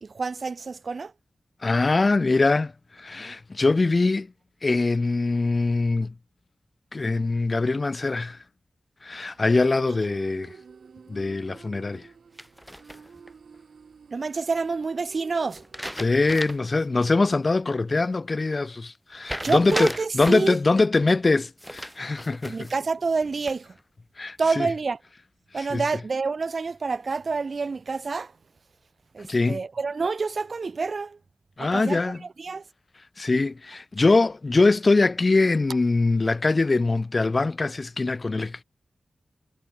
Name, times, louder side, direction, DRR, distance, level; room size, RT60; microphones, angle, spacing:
voice 1, 0.0-1.1 14.1-15.6 19.4-20.6 22.4-23.8 24.4-25.0 25.5-28.3 29.1-31.2 31.6-32.6, right 4 dB, 60° right, 1.0 m, -28 dB
voice 2, 1.6-2.7 3.0-4.3 4.6-6.1 6.9-8.4 9.0-10.5 11.1-12.0 16.0-22.7 24.2-24.7 25.7-25.8 29.3-29.6 31.6-32.2 33.2-38.6, left 3 dB, 45° left, 1.7 m, -23 dB
sound 1, 9.2-17.4, right 5 dB, 80° right, 5.2 m, -49 dB
sound 2, 12.4-13.3 15.5-16.8 17.2-17.3 19.3-20.6 21.6-22.8 23.2-23.8, equal, ahead, 7.7 m, -36 dB
cardioid pair, 65°, 0 cm